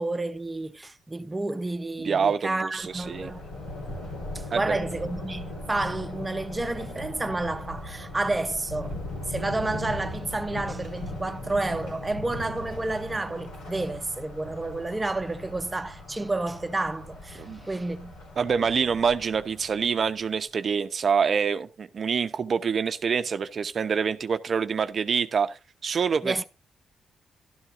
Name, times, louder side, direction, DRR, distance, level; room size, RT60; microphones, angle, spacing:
voice 1, 0.0-3.5 4.3-9.0 9.3-18.1 26.2-26.4, right 2 dB, 20° right, 0.9 m, -30 dB
voice 2, 2.0-3.3 4.5-4.8 17.4-17.6 18.4-26.4, right 6 dB, 55° right, 0.7 m, -26 dB
Thunder, 2.8-20.1, left 1 dB, 90° left, 4.8 m, -39 dB
12.5 x 12.0 x 2.6 m
cardioid pair, 70°, 0 cm